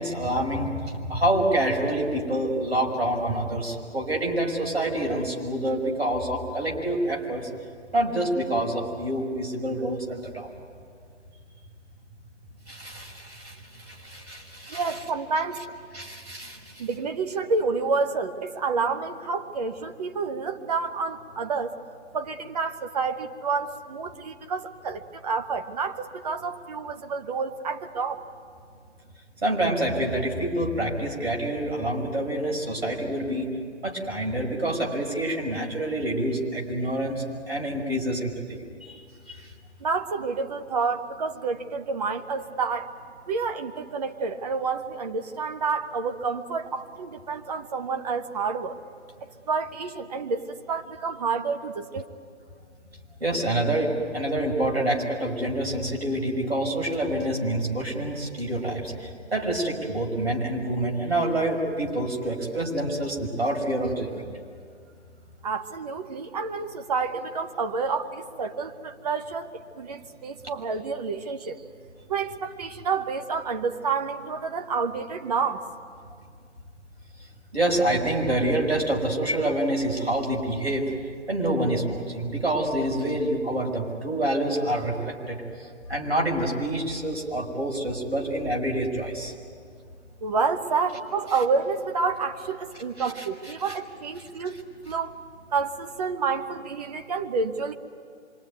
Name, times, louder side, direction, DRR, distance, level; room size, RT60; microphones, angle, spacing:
voice 1, 0.0-7.4 7.9-10.5 12.7-13.5 13.9-15.0 15.9-16.6 29.4-33.5 33.8-38.6 38.9-39.0 39.3-39.4 53.2-64.1 77.5-80.9 81.3-85.4 85.9-89.3 93.0-93.2 93.6-93.7 94.4-94.5, right 1 dB, 60° right, 1 dB, 5.9 m, -27 dB
voice 2, 14.7-15.7 16.8-21.8 22.1-28.2 39.8-42.9 43.3-48.8 49.2-52.0 65.4-71.6 72.1-75.7 90.2-95.2 95.5-97.7, right 4 dB, 35° right, 6 dB, 1.2 m, -29 dB
25.5 x 24.0 x 9.5 m, 2.2 s
figure-of-eight pair, 140°, 35 cm